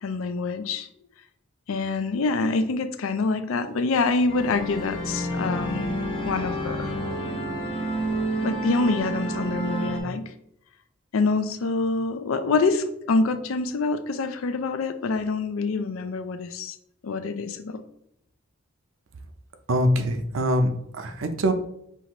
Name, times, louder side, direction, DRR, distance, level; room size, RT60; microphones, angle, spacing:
voice 1, 0.0-0.9 1.7-5.9 6.2-6.9 8.4-10.3 11.1-16.7 17.0-17.8, left 3 dB, 90° left, 10 dB, 0.4 m, -26 dB
sound 1, 4.3-10.0, right 1 dB, 25° left, 0.9 m, -29 dB
voice 2, 19.7-21.5, equal, 70° right, 7 dB, 0.5 m, -23 dB
5.5 x 2.5 x 3.0 m, 0.77 s
head